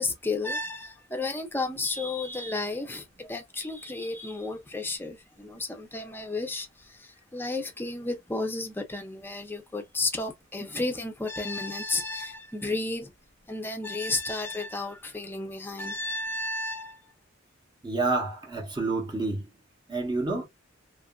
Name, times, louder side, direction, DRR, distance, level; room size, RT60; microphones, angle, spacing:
voice 1, 0.0-13.1 13.5-17.0, left 2 dB, 10° left, 0.5 m, -32 dB
voice 2, 17.8-19.5 19.9-20.4, right 3 dB, 20° right, 0.8 m, -28 dB
2.9 x 2.4 x 2.3 m
head